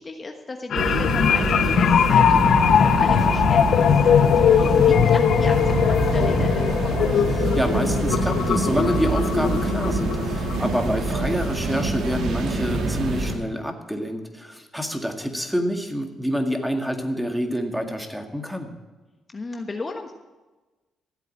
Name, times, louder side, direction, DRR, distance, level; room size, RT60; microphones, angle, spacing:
voice 1, 0.0-7.3 19.3-20.1, left 3 dB, 30° left, 5 dB, 1.2 m, -35 dB
sound 1, 0.7-11.5 11.8-12.0, left 8 dB, 65° left, 0.5 m, -20 dB
sound 2, 0.7-13.3, right 3 dB, 80° right, 2.4 m, -25 dB
voice 2, 7.3-18.7, equal, ahead, 5 dB, 2.0 m, -27 dB
15.0 x 8.2 x 8.6 m, 1.2 s
cardioid pair, 90°, 0 cm